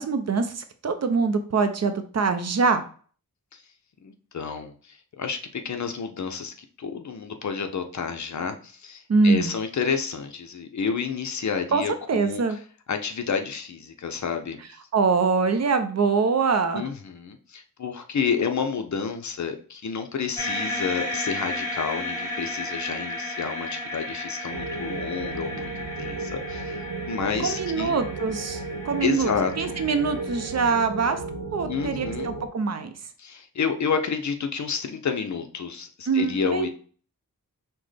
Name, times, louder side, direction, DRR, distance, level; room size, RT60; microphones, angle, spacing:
voice 1, 0.0-2.9 9.1-9.5 11.7-11.8 12.1-12.6 14.9-16.9 27.4-29.3 29.6-31.2 31.5-32.9 36.1-36.7, right 4 dB, 50° right, 9 dB, 0.5 m, -24 dB
voice 2, 4.0-12.6 12.9-14.6 16.7-28.0 29.0-29.8 31.6-32.3 33.2-36.7, left 6 dB, 55° left, 6 dB, 0.6 m, -30 dB
sound 1, 20.4-30.6, left 2 dB, 10° left, 1.9 m, -34 dB
sound 2, 24.5-32.5, right 4 dB, 85° right, 0.7 m, -34 dB
5.9 x 2.1 x 3.3 m, 0.43 s
wide cardioid pair, 155°, 35 cm